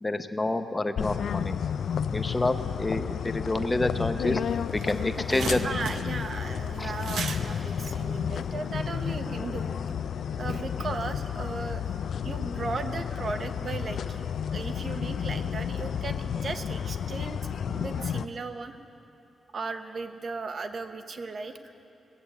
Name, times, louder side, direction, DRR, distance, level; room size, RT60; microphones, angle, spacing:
voice 1, 0.0-1.6 2.1-4.4 4.7-5.6 6.8-6.9 17.7-17.8, left 2 dB, 15° left, 8 dB, 0.7 m, -28 dB
sound 1, 1.0-18.3, left 8 dB, 70° left, 0.3 m, -31 dB
sound 2, 4.2-4.3 4.6-8.8, right 6 dB, 85° right, 0.7 m, -38 dB
voice 2, 5.6-9.8 10.4-11.8 12.2-18.8 19.5-21.6, right 4 dB, 45° right, 8 dB, 0.8 m, -36 dB
18.5 x 8.3 x 8.0 m, 2.7 s
wide cardioid pair, 115°, 0 cm